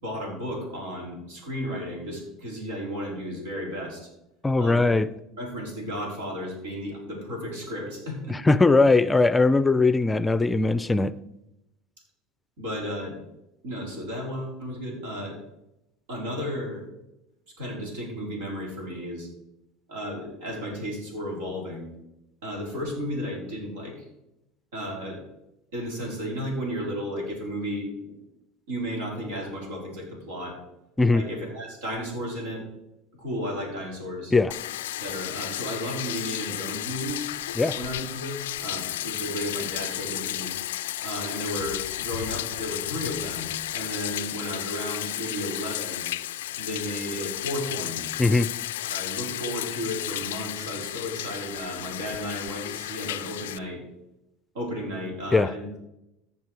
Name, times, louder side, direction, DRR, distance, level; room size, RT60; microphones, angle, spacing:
voice 1, 0.0-4.1 4.6-5.0 5.4-8.4 12.6-13.2 13.6-15.4 16.1-16.8 17.6-19.3 19.9-21.9 22.4-24.0 24.7-25.2 25.7-28.2 28.7-30.6 31.1-32.6 33.2-34.3 35.0-37.4 37.7-40.5 41.0-46.0 46.6-48.0 48.9-53.8 54.5-55.8, equal, 80° right, 0 dB, 4.1 m, -33 dB
voice 2, 4.4-5.1 8.3-11.1 31.0-31.2 34.3-34.5 37.6-37.8 48.2-48.5 55.3-55.5, left 3 dB, 15° left, 15 dB, 0.5 m, -20 dB
Bathtub (filling or washing), 34.5-53.6, left 14 dB, 85° left, 0.3 m, -33 dB
15.0 x 5.5 x 4.7 m, 0.87 s
hypercardioid pair, 85°, 0 cm